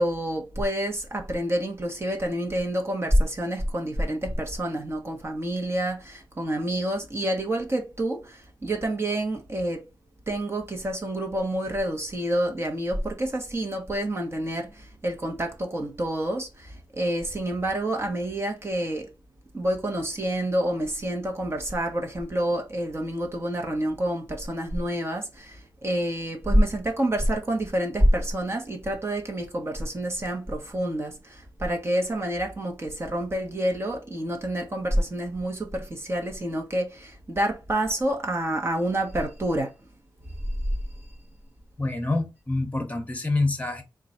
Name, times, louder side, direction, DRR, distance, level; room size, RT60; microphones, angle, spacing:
voice 1, 0.0-9.8 10.3-19.1 19.5-39.7, right 1 dB, 30° right, 1.1 m, -28 dB
voice 2, 41.8-43.8, left 2 dB, 20° left, 1.1 m, -26 dB
3.8 x 2.4 x 4.2 m
wide cardioid pair, 90°, 8 cm